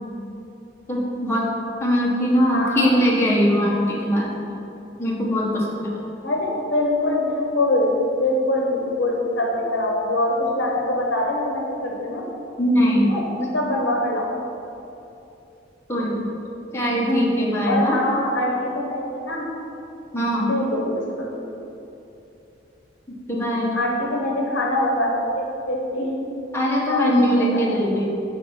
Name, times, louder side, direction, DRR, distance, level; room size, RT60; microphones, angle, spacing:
voice 1, 0.9-1.5 1.8-4.6 5.0-5.9 12.6-13.2 15.9-16.3 16.7-18.0 20.1-20.5 23.3-23.8 26.5-28.0, equal, 15° left, -6 dB, 1.2 m, -21 dB
voice 2, 2.5-2.9 6.2-7.9 8.1-12.2 13.1-14.3 16.9-17.3 17.7-19.5 20.5-21.2 23.7-26.1 26.9-27.6, left 1 dB, 70° left, -2 dB, 0.9 m, -24 dB
6.1 x 4.4 x 5.6 m, 2.9 s
head